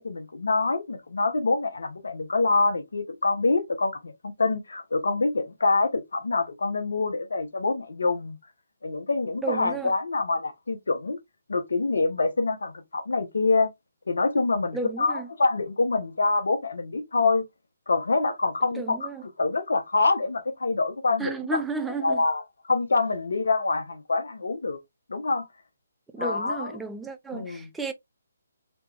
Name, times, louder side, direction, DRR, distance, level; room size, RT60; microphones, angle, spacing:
voice 1, 0.0-8.4 8.8-11.2 11.5-13.7 14.1-17.4 17.9-19.1 19.4-21.6 22.0-22.4 22.7-24.8 25.1-25.5 26.2-26.8 27.3-27.7, left 3 dB, 75° left, 0.9 m, -25 dB
voice 2, 9.4-9.9 14.7-15.3 18.7-19.2 21.2-22.2 26.1-27.9, right 4 dB, 5° right, 0.4 m, -32 dB
3.3 x 3.0 x 2.4 m
figure-of-eight pair, 145°, 0 cm